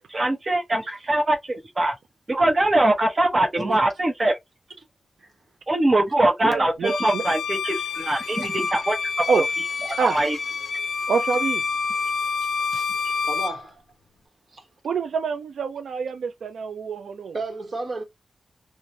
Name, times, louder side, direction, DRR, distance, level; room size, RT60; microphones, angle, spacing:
voice 1, 0.1-1.9 2.3-4.4 5.7-9.4 10.0-10.4, right 1 dB, 30° right, 0.8 m, -22 dB
voice 2, 6.4-7.2 9.3-9.5 10.0-10.2 11.1-11.6 14.8-17.4, right 5 dB, 80° right, 0.3 m, -26 dB
Bowed string instrument, 6.8-13.6, left 5 dB, 75° left, 0.4 m, -28 dB
voice 3, 12.4-13.8 14.5-14.7 17.3-18.0, right 3 dB, 50° right, 1.0 m, -34 dB
3.1 x 2.1 x 2.6 m
wide cardioid pair, 150°, 0 cm